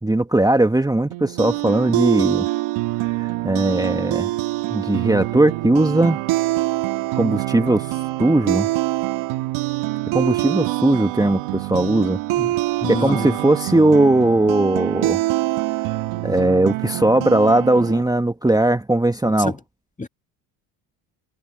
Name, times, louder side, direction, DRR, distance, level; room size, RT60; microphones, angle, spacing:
voice 1, 0.0-2.5 3.4-4.3 4.7-6.2 7.1-8.7 10.1-12.2 12.9-15.2 16.2-19.5, right 2 dB, 5° right, 1.5 m, -18 dB
sound 1, 1.1-18.0, right 18 dB, 75° right, 1.8 m, -25 dB
voice 2, 12.8-13.4 19.4-19.6 20.0-20.1, left 3 dB, 15° left, 1.9 m, -27 dB
supercardioid pair, 75°, 50 cm